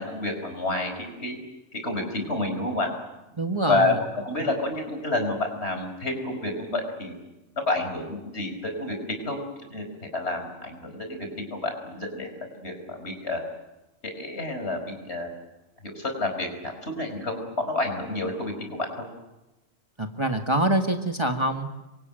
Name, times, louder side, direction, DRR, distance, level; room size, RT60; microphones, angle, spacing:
voice 1, 0.0-1.4 1.7-2.9 3.7-7.1 7.7-9.4 9.7-13.4 14.0-15.3 15.8-19.1, left 2 dB, 60° left, 5 dB, 5.2 m, -29 dB
voice 2, 3.3-4.0 20.0-21.8, right 1 dB, 25° right, 5 dB, 1.6 m, -25 dB
26.5 x 24.0 x 9.0 m, 1.0 s
omnidirectional pair, 1.3 m